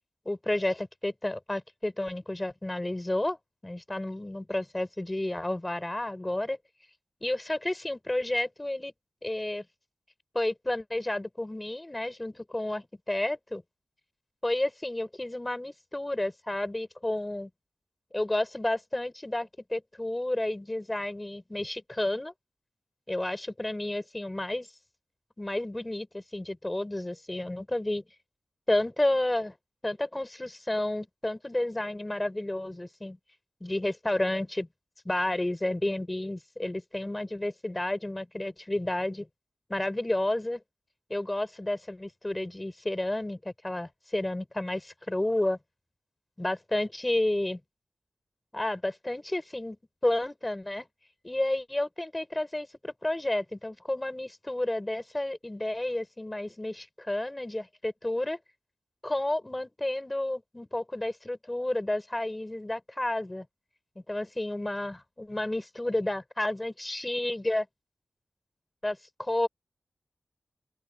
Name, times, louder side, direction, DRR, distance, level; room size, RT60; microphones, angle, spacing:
voice 1, 0.3-3.4 3.6-6.6 7.2-8.9 9.2-9.7 10.3-13.6 14.4-17.5 18.1-22.3 23.1-24.7 25.4-28.0 28.7-29.5 29.8-33.2 33.6-34.7 35.0-39.3 39.7-40.6 41.1-45.6 46.4-47.6 48.5-49.8 50.0-50.9 51.2-58.4 59.0-63.5 64.1-67.7 68.8-69.5, left 1 dB, 15° left, 5.6 m, -31 dB
open air
wide cardioid pair, 140°, 0 cm